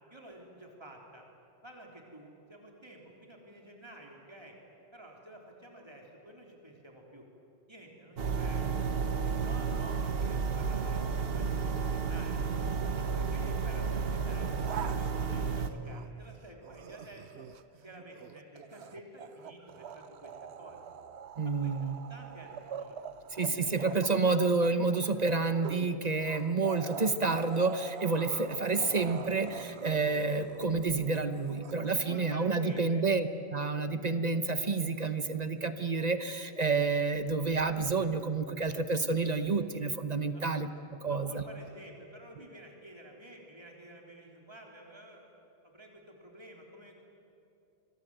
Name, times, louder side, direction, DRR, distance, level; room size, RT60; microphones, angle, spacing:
voice 1, 0.1-1.3 1.6-4.6 4.9-7.2 7.7-8.8 9.2-12.4 12.9-17.4 17.8-20.3 20.6-20.8 21.4-23.0 23.5-24.0 31.8-33.0 40.3-40.4 41.1-45.3 45.6-47.0, right 1 dB, 25° right, 0 dB, 3.8 m, -51 dB
sound 1, 8.2-15.7, right 5 dB, 65° right, 1.5 m, -32 dB
sound 2, 14.2-16.3 16.6-32.2, right 7 dB, 80° right, 1.1 m, -45 dB
voice 2, 21.4-22.0 23.4-40.7 41.0-41.4, right 4 dB, 40° right, 10 dB, 1.1 m, -29 dB
26.0 x 22.5 x 9.0 m, 2.8 s
omnidirectional pair, 1.1 m